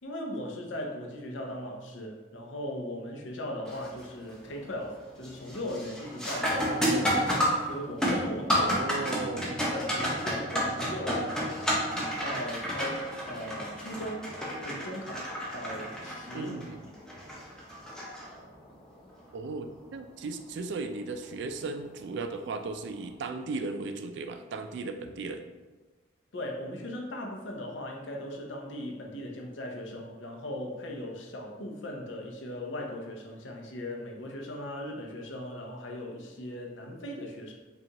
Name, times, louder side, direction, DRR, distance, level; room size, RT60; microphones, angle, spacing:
voice 1, 0.0-7.4 7.6-8.8 9.7-16.6 26.3-37.5, left 1 dB, 80° left, 0 dB, 0.7 m, -38 dB
sound 1, 3.7-4.0 4.5-4.9 5.2-18.7 21.3-21.4 22.2-22.4, equal, 5° left, 0.6 m, -31 dB
voice 2, 8.6-9.6 16.3-16.8 19.3-25.5, right 3 dB, 65° right, 7 dB, 0.3 m, -36 dB
5.1 x 2.4 x 2.9 m, 1.3 s
head